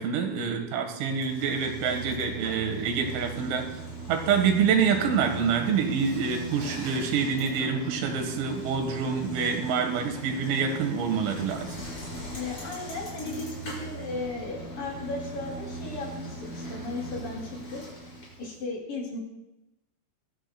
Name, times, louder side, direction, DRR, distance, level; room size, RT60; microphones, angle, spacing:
voice 1, 0.0-3.7 4.1-11.8, right 6 dB, 85° right, 4 dB, 4.2 m, -26 dB
Bicycle, 1.0-18.6, right 2 dB, 30° left, 6.3 m, -39 dB
voice 2, 12.3-19.2, left 3 dB, 45° left, -2 dB, 3.9 m, -36 dB
21.5 x 13.0 x 2.3 m, 0.96 s
omnidirectional pair, 5.8 m